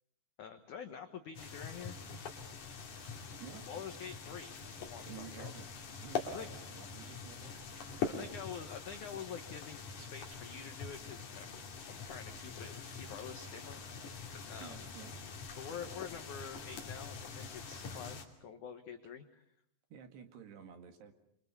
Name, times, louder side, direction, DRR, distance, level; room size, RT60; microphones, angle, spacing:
voice 1, 0.4-2.0 3.7-4.5 4.8-5.5 6.2-6.5 8.1-11.6 11.9-13.8 14.5-14.9 15.6-19.4, left 7 dB, 75° left, 7 dB, 1.8 m, -47 dB
sound 1, 1.3-18.2, left 5 dB, 45° left, 3.7 m, -44 dB
Drip, 1.4-3.7 4.0-4.7 5.1-5.2 5.5-6.3 6.7-7.3 7.7-8.9 9.2-12.0 12.3-14.0, right 2 dB, 40° right, 5.7 m, -67 dB
voice 2, 5.1-5.7 6.0-7.6 8.1-8.2 14.6-15.1 16.2-16.3 19.9-21.1, right 7 dB, 65° right, 7 dB, 3.8 m, -51 dB
26.0 x 25.0 x 6.9 m, 0.71 s
omnidirectional pair, 5.4 m